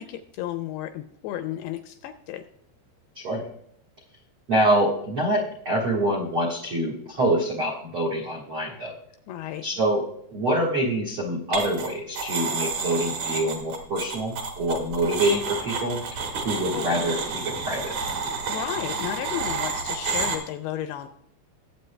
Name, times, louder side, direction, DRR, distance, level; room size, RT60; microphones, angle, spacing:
voice 1, 0.0-2.4 9.3-9.6 16.7-16.9 18.5-21.1, left 12 dB, 85° left, 9 dB, 2.3 m, -33 dB
voice 2, 3.1-3.5 4.5-8.9 9.6-10.0 10.3-16.0 16.4-17.9, right 1 dB, 85° right, 2 dB, 1.1 m, -25 dB
sound 1, 11.5-11.9 12.2-20.4, right 4 dB, 55° right, 2.4 m, -30 dB
20.0 x 8.3 x 2.2 m, 0.72 s
omnidirectional pair, 5.0 m